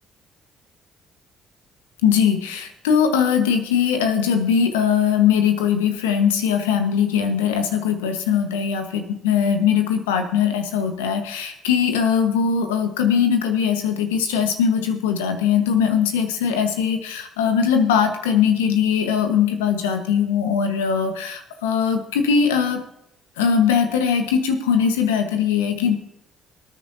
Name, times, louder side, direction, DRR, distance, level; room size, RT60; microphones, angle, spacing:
voice 1, 2.0-22.8 23.4-26.0, left 7 dB, 85° left, 6 dB, 1.4 m, -20 dB
23.0 x 9.5 x 2.8 m, 0.83 s
hypercardioid pair, 50°, 0 cm